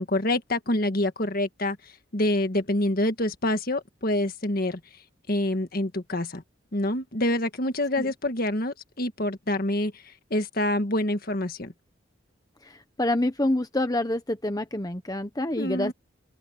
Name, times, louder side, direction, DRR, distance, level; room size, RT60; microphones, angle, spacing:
voice 1, 0.0-1.8 2.1-4.8 5.3-6.4 6.7-11.7 15.6-15.9, left 1 dB, 50° left, 1.7 m, -26 dB
voice 2, 12.6-15.9, left 1 dB, 20° left, 1.2 m, -27 dB
open air
head